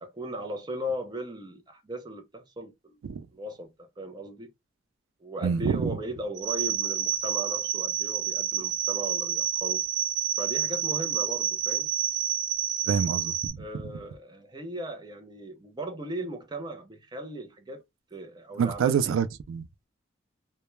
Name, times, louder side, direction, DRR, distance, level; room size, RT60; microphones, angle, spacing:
voice 1, 0.0-3.0 3.3-4.5 5.2-9.9 10.4-11.9 13.6-17.8 18.1-19.2, right 1 dB, 20° right, 0.4 m, -37 dB
voice 2, 5.4-6.0 12.9-13.8 18.6-19.9, right 7 dB, 85° right, 0.3 m, -27 dB
sound 1, 6.4-13.5, right 9 dB, 60° right, 0.9 m, -29 dB
2.2 x 2.1 x 3.0 m
head